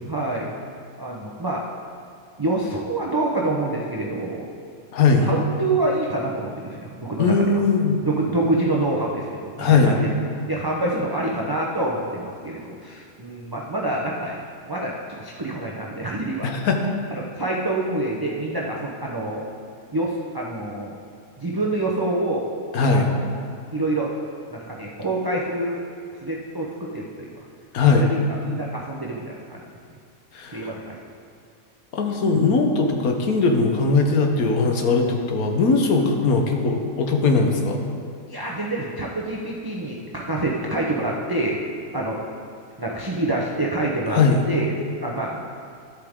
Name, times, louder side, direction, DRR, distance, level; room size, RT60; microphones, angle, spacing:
voice 1, 0.1-0.5 1.0-1.6 2.4-4.5 5.2-7.3 8.0-10.1 10.5-14.4 14.6-16.5 17.1-19.4 19.9-20.9 21.4-22.5 22.9-23.4 23.7-24.1 24.5-25.8 26.2-27.3 27.9-29.6 30.5-31.0 38.3-41.6 41.9-42.2 42.8-44.2 44.5-44.8 45.0-45.4, right 2 dB, 25° right, -4 dB, 0.6 m, -26 dB
voice 2, 4.9-5.3 7.2-8.0 9.6-10.0 16.4-16.9 22.7-23.1 27.7-28.1 30.3-30.7 31.9-37.8 44.1-44.5, left 4 dB, 90° left, 3 dB, 1.4 m, -19 dB
12.0 x 8.3 x 3.6 m, 2.3 s
omnidirectional pair, 1.5 m